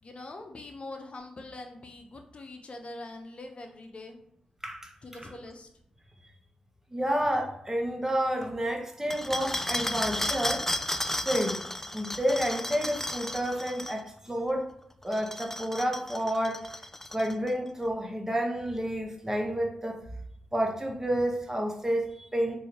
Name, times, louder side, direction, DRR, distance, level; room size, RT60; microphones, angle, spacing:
voice 1, 0.0-4.2 5.0-5.7, left 2 dB, 50° left, 4 dB, 0.8 m, -43 dB
voice 2, 6.9-10.6 11.2-11.6 11.9-14.7 15.0-16.7 17.1-20.0 20.5-22.6, equal, 15° right, 1 dB, 1.1 m, -30 dB
sound 1, 9.1-14.0 15.0-17.5, left 1 dB, 15° left, 0.3 m, -33 dB
3.1 x 2.7 x 4.5 m, 0.73 s
supercardioid pair, 40°, 3 cm